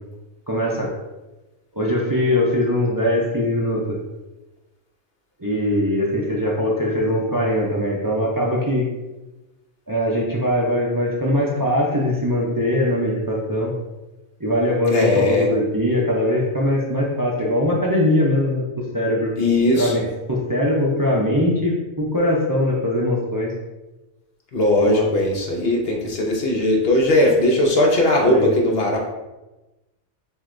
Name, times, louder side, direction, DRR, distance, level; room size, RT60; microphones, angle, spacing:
voice 1, 0.5-0.9 1.7-4.0 5.4-8.9 9.9-13.7 14.4-18.6 18.9-19.3 19.8-20.0 20.3-23.5 24.8-25.1 28.2-28.5, left 1 dB, 30° right, -4 dB, 0.4 m, -21 dB
voice 2, 14.9-15.5 19.4-20.0 24.5-29.0, left 1 dB, 55° left, 0 dB, 0.8 m, -19 dB
7.5 x 2.6 x 2.6 m, 1.1 s
omnidirectional pair, 1.5 m